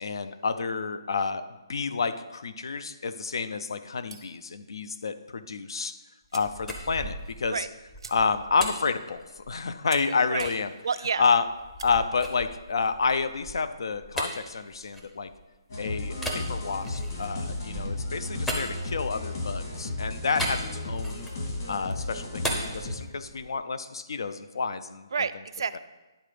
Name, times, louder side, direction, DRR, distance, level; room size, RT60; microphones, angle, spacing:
voice 1, 0.0-6.0 6.3-7.7 8.1-10.7 11.2-11.5 11.8-15.3 15.8-21.3 21.7-25.3 25.7-25.8, left 4 dB, 75° left, 12 dB, 0.5 m, -29 dB
sound 1, 4.1-4.5 5.8-5.9 6.3-6.6 7.0-7.1 7.3-7.5 7.9-8.5 8.9-9.0 9.5-9.6 9.9-10.1 10.5-10.8 11.6-11.9, right 4 dB, 85° right, 0.8 m, -46 dB
sound 2, 6.2-9.8 10.4-10.6 11.1-15.6 16.1-19.4 20.4-21.5 21.8-23.6, equal, 5° left, 0.6 m, -38 dB
voice 2, 10.0-10.5 10.8-11.2 25.1-25.8, right 6 dB, 65° right, 14 dB, 0.4 m, -30 dB
sound 3, 15.7-23.0, left 2 dB, 50° left, 2.4 m, -34 dB
10.0 x 3.8 x 5.0 m, 1.1 s
hypercardioid pair, 165°, 2 cm